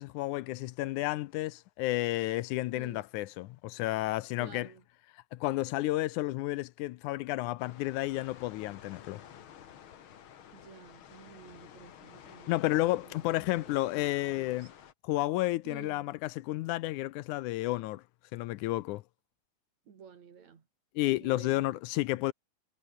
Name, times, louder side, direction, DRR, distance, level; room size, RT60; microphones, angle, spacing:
voice 1, 0.0-4.7 5.3-9.2 12.5-14.7 15.0-18.0 18.3-19.0 21.0-22.3, left 17 dB, 80° left, 2.0 m, -31 dB
voice 2, 2.7-3.1 4.4-4.8 10.5-14.7 15.6-16.1 19.9-20.7 21.2-21.8, right 7 dB, 60° right, 3.9 m, -53 dB
sound 1, 7.6-14.9, left 9 dB, 50° left, 1.8 m, -52 dB
omnidirectional pair, 3.6 m